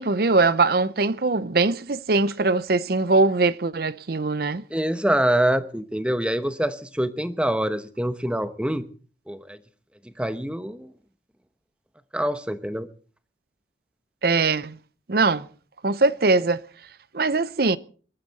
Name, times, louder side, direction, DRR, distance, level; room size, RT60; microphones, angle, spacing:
voice 1, 0.0-4.6 14.2-14.8 15.1-15.5 15.8-16.6 17.1-17.8, right 3 dB, 55° right, 0.7 m, -21 dB
voice 2, 4.7-8.8 9.3-9.6 10.2-10.9 12.1-12.9, right 1 dB, 5° right, 0.9 m, -25 dB
22.0 x 12.5 x 4.1 m
head